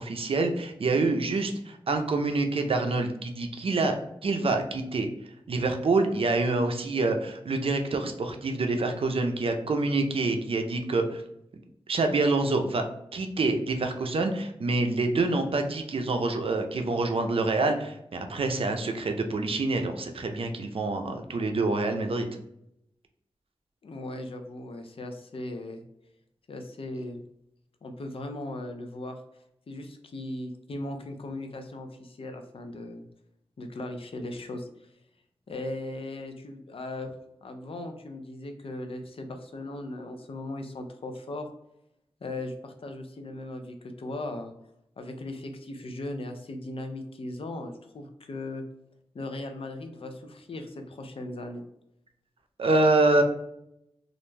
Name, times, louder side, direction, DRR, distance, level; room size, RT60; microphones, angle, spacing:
voice 1, 0.0-5.1 5.5-11.2 11.9-12.8 13.1-22.3 52.6-53.2, right 3 dB, 65° right, 5 dB, 0.4 m, -26 dB
voice 2, 23.8-25.8 26.5-27.2 27.8-29.2 29.7-33.0 33.6-34.9 35.5-37.1 37.4-41.5 42.2-44.5 45.0-48.6 49.1-51.6, left 2 dB, 65° left, 6 dB, 0.5 m, -38 dB
2.4 x 2.1 x 3.1 m, 0.79 s
cardioid pair, 40°, 10 cm